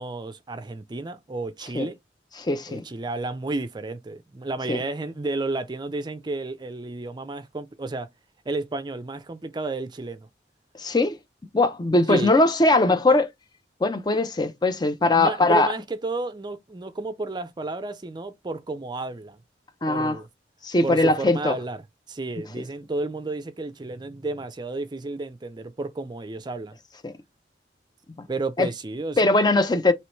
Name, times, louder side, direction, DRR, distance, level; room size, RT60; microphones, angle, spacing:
voice 1, 0.0-2.0 2.7-8.1 8.5-10.3 12.1-12.3 15.1-19.4 19.9-20.3 20.8-21.8 22.1-26.8 28.3-29.2, right 2 dB, 25° right, 0.4 m, -32 dB
voice 2, 2.4-2.8 4.7-4.8 10.7-11.2 11.5-13.3 13.8-15.7 19.8-20.2 20.6-21.5 27.0-27.1 28.6-28.7 29.2-29.9, left 2 dB, 25° left, 0.5 m, -20 dB
4.6 x 3.0 x 3.0 m
head